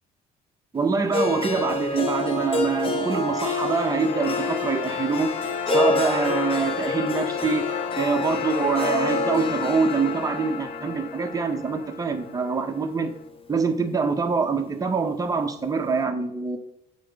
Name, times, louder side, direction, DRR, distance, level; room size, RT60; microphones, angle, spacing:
voice 1, 0.7-13.1 13.5-16.6, right 5 dB, 20° right, 1.1 m, -25 dB
Harp, 1.1-13.3, left 2 dB, 30° left, 1.2 m, -29 dB
sound 1, 2.8-12.9, left 12 dB, 65° left, 0.4 m, -34 dB
8.5 x 3.8 x 5.3 m
cardioid pair, 110°, 17 cm